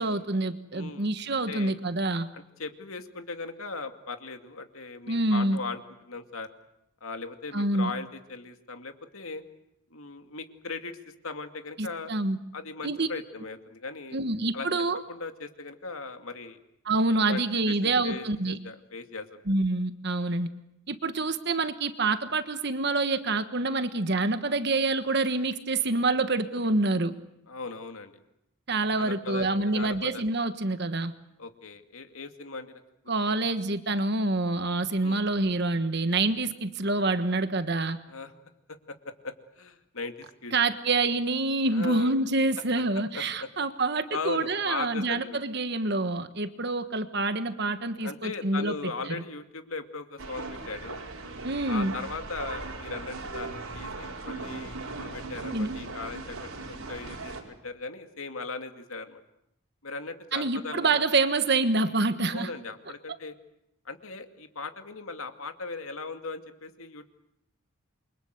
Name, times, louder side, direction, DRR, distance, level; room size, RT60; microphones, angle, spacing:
voice 1, 0.0-2.3 5.1-5.6 7.5-7.9 11.8-12.4 12.8-13.1 14.1-15.0 16.8-18.6 19.5-20.5 20.9-27.1 28.7-31.1 33.1-38.0 40.5-48.7 51.4-51.9 55.5-55.7 60.3-62.5, right 2 dB, 50° right, 10 dB, 1.4 m, -27 dB
voice 2, 0.7-1.8 2.3-6.5 7.0-9.4 9.9-11.0 11.2-12.1 12.5-14.2 14.5-14.7 15.1-16.6 17.3-19.4 27.5-28.2 29.0-30.2 31.4-32.8 33.2-33.3 35.0-35.2 38.1-38.3 38.9-40.5 41.7-42.2 42.8-42.9 43.1-43.5 44.1-45.4 48.0-51.0 51.7-57.3 57.6-59.2 59.8-61.0 62.3-63.3 63.8-67.1, left 3 dB, 80° left, 7 dB, 2.4 m, -38 dB
sound 1, 50.2-57.4, right 3 dB, 85° right, 5.1 m, -38 dB
28.5 x 24.5 x 8.1 m, 0.81 s
head